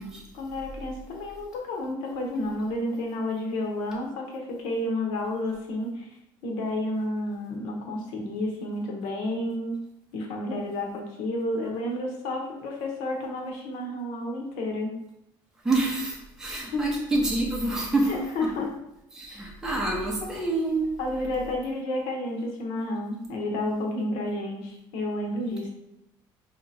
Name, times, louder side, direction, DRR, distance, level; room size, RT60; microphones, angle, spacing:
voice 1, 0.3-6.1 6.4-9.8 10.1-15.0 16.6-16.9 18.0-18.7 19.3-19.5 19.9-20.0 21.0-25.7, left 1 dB, 90° left, 1 dB, 0.9 m, -31 dB
voice 2, 15.6-18.1 19.1-20.9, right 2 dB, 5° right, -3 dB, 0.7 m, -27 dB
3.3 x 2.8 x 4.1 m, 0.83 s
cardioid pair, 160°, 9 cm